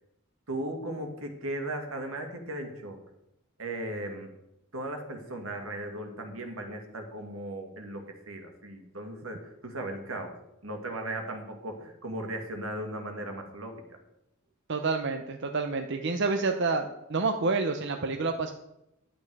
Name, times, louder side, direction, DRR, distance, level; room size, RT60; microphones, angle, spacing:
voice 1, 0.5-3.0 3.6-4.3 4.7-10.4 10.6-14.0, right 1 dB, 85° right, 3 dB, 2.2 m, -37 dB
voice 2, 14.7-18.5, right 3 dB, 60° right, 5 dB, 0.8 m, -28 dB
11.5 x 8.7 x 4.8 m, 0.85 s
head